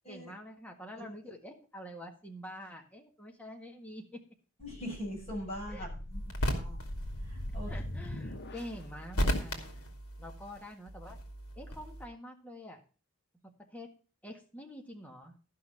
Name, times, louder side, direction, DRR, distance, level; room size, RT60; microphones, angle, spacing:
voice 1, 0.1-4.2 5.7-5.9 7.7-9.9 10.2-11.2 11.6-12.8 13.7-13.9 14.2-15.3, left 1 dB, 5° left, 2 dB, 1.7 m, -46 dB
sound 1, 4.6-8.9, left 1 dB, 50° left, 1.0 m, -41 dB
voice 2, 4.6-6.2 6.5-6.8 7.2-7.7, equal, 30° left, -3 dB, 7.2 m, -41 dB
sound 2, 6.1-12.1, equal, 80° left, 2.6 m, -36 dB
14.0 x 5.9 x 5.7 m, 0.36 s
head